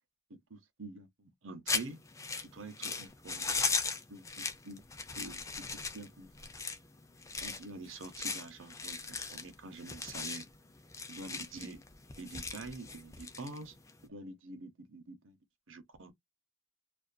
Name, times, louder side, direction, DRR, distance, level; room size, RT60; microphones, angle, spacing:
voice 1, 0.3-2.0 2.4-3.6 4.1-4.8 5.2-6.3 7.4-10.5 11.1-11.8 12.2-13.8 14.0-15.4 15.7-16.1, right 3 dB, 70° right, 0.7 m, -47 dB
sound 1, 1.7-14.0, left 4 dB, 15° left, 0.4 m, -38 dB
2.4 x 2.2 x 2.4 m
head